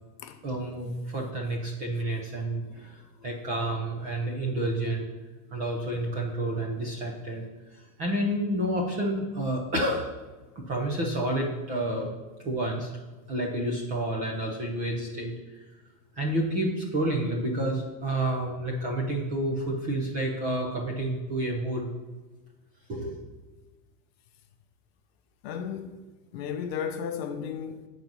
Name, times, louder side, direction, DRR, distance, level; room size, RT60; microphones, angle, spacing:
voice 1, 0.4-5.0 5.5-7.5 8.0-10.1 10.7-12.1 12.4-12.9 13.3-15.3 16.2-21.9 22.9-23.2, right 1 dB, 15° right, 0.4 m, -29 dB
voice 2, 25.4-26.0 26.3-27.9, left 7 dB, 40° left, 0.5 m, -34 dB
8.6 x 4.0 x 5.9 m
supercardioid pair, 180°, 48 cm